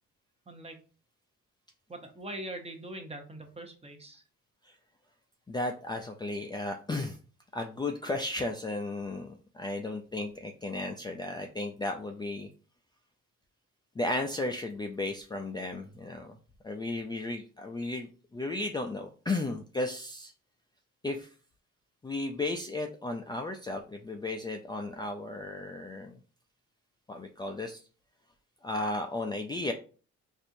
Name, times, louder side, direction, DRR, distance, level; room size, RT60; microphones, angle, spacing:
voice 1, 0.5-0.8 1.9-4.2, right 1 dB, 20° right, 5 dB, 0.8 m, -42 dB
voice 2, 5.5-7.2 7.5-12.5 14.0-16.4 16.6-20.3 21.0-21.3 22.0-26.1 27.1-27.8 28.6-29.7, left 2 dB, 15° left, 3 dB, 0.4 m, -34 dB
4.3 x 2.6 x 2.6 m, 0.38 s
cardioid pair, 90°, 30 cm